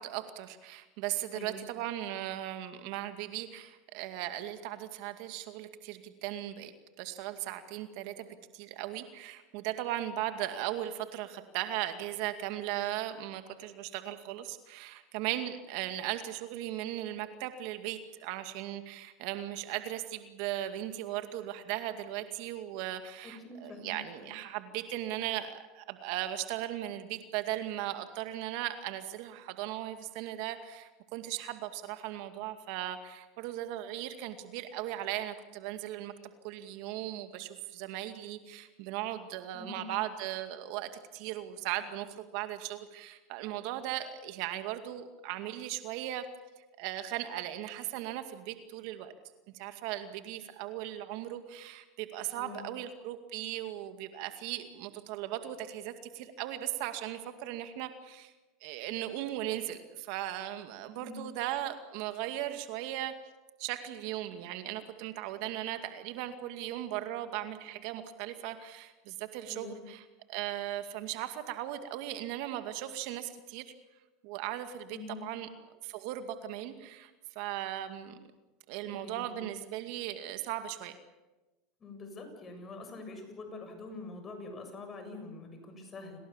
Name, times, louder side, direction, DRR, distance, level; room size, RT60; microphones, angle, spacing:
voice 1, 0.0-6.7 7.0-8.3 8.5-36.1 36.4-46.3 46.8-49.1 49.5-58.3 58.6-63.1 63.6-73.6 74.2-78.2 78.7-81.0, right 13 dB, 65° right, 8 dB, 2.2 m, -37 dB
voice 2, 23.2-24.3 39.5-39.9 52.3-52.7 60.9-61.2 69.5-69.8 74.9-75.3 78.8-79.4 81.8-86.2, left 3 dB, 30° left, 6 dB, 7.3 m, -45 dB
29.0 x 19.0 x 7.4 m, 1.1 s
supercardioid pair, 110°, 0 cm